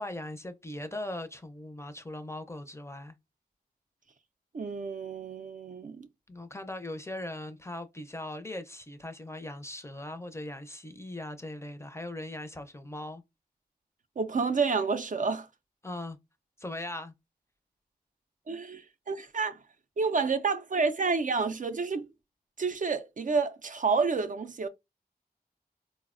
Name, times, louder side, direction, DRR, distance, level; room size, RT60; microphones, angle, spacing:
voice 1, 0.0-3.1 6.3-13.2 15.8-16.2 16.6-17.1, left 1 dB, 15° left, 0.5 m, -39 dB
voice 2, 4.5-6.1 14.2-15.5 18.5-19.6 20.0-22.1 22.6-24.7, right 4 dB, 55° right, 0.4 m, -29 dB
3.8 x 2.0 x 2.4 m
wide cardioid pair, 50°, 16 cm